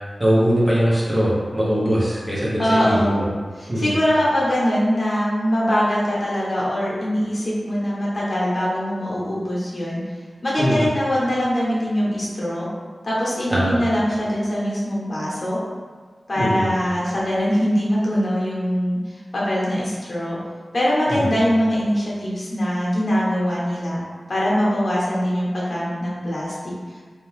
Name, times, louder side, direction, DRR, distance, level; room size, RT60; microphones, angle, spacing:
voice 1, 0.2-3.3 3.7-3.9 10.6-10.8 13.5-13.8 16.3-16.7 21.1-21.4, equal, 20° right, -7 dB, 0.9 m, -21 dB
voice 2, 2.6-3.2 3.6-10.0 10.4-12.7 13.0-15.6 16.3-20.4 20.7-24.0 24.3-26.7, equal, 50° left, -7 dB, 0.9 m, -22 dB
2.6 x 2.3 x 3.2 m, 1.5 s
cardioid pair, 50°, 0 cm